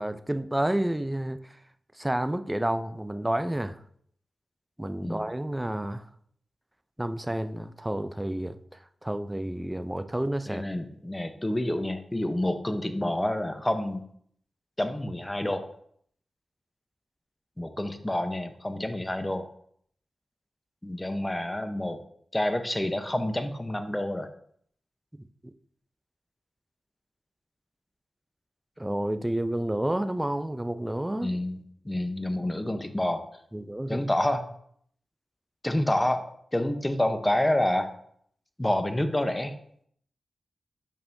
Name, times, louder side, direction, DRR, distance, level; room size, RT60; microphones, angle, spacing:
voice 1, 0.0-1.6 2.0-3.8 4.8-6.1 7.0-10.6 28.8-31.3 33.5-34.0, right 1 dB, 15° right, 10 dB, 0.5 m, -30 dB
voice 2, 10.5-14.0 14.8-15.6 17.6-19.5 20.8-22.0 22.3-24.3 31.2-33.2 33.9-34.4 35.6-36.2 36.5-37.9 38.6-39.5, left 1 dB, 20° left, 8 dB, 0.9 m, -28 dB
8.7 x 5.4 x 2.7 m, 0.66 s
cardioid pair, 45°, 0 cm